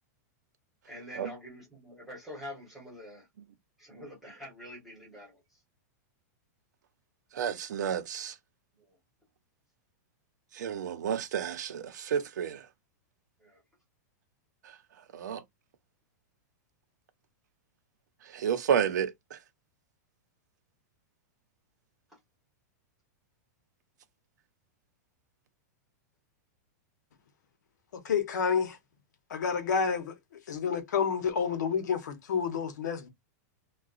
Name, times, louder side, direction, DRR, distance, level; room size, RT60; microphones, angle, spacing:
voice 1, 0.8-3.3 3.8-5.4 8.8-9.0 13.4-13.6, left 1 dB, ahead, 1.2 m, -46 dB
voice 2, 7.3-8.3 10.5-12.6 15.1-15.4 18.3-19.4, right 8 dB, 85° right, 0.8 m, -31 dB
voice 3, 27.9-28.8 29.3-30.2 30.5-33.1, left 6 dB, 85° left, 0.9 m, -29 dB
3.7 x 2.3 x 2.5 m
supercardioid pair, 180°, 9 cm